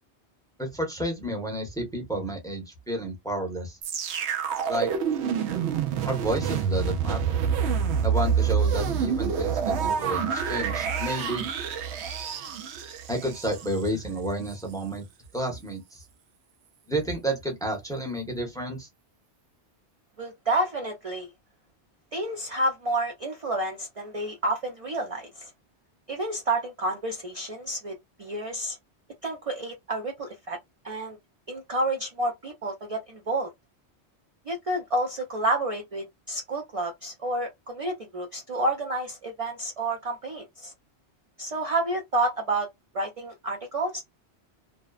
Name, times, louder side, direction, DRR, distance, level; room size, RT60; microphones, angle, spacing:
voice 1, 0.6-3.8 4.7-4.9 6.0-7.4 8.0-11.5 13.1-15.0 15.3-16.0 16.9-18.9, right 1 dB, 5° left, 0.7 m, -31 dB
sound 1, 3.8-13.9 14.5-14.6, right 7 dB, 75° right, 0.8 m, -27 dB
voice 2, 20.2-21.3 22.1-25.5 26.1-28.8 29.2-30.6 30.8-31.2 31.5-33.5 34.5-40.7 41.4-42.7 42.9-44.0, right 1 dB, 45° right, 0.4 m, -29 dB
2.6 x 2.1 x 2.3 m
omnidirectional pair, 1.1 m